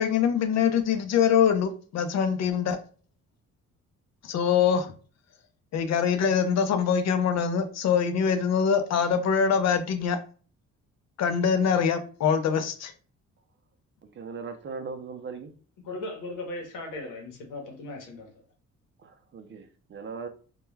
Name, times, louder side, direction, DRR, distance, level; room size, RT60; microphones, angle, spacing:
voice 1, 0.0-2.8 4.2-4.9 5.7-10.2 11.2-12.9, left 7 dB, 60° left, 0.5 m, -24 dB
voice 2, 14.2-15.5 19.0-20.3, right 5 dB, 40° right, 0.5 m, -39 dB
voice 3, 15.8-18.3, left 2 dB, 90° left, 0.9 m, -37 dB
2.2 x 2.2 x 3.1 m
cardioid pair, 90°, 30 cm